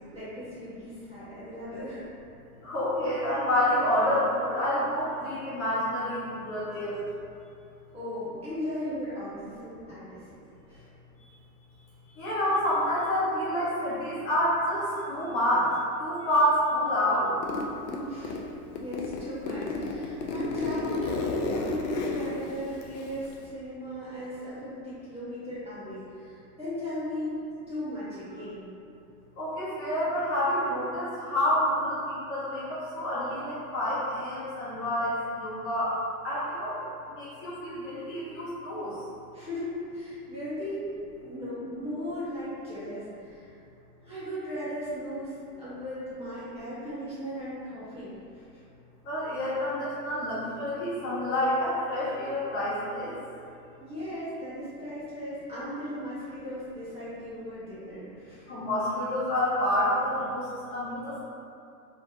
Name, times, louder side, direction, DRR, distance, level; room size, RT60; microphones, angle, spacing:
voice 1, 0.1-2.1 7.9-10.2 10.7-10.9 17.9-18.5 18.8-27.4 27.7-28.7 39.3-40.9 41.2-43.5 44.0-48.6 53.8-58.5, equal, 10° right, -12 dB, 1.1 m, -37 dB
voice 2, 2.6-7.0 12.2-15.7 16.0-17.3 29.4-35.9 36.2-36.8 37.1-38.9 49.0-53.1 58.5-60.5 60.7-61.2, left 1 dB, 30° left, -9 dB, 1.2 m, -28 dB
Zipper (clothing), 17.4-18.4 18.8-23.5, left 3 dB, 85° left, 0.7 m, -32 dB
4.4 x 3.5 x 2.8 m, 2.7 s
supercardioid pair, 135°, 47 cm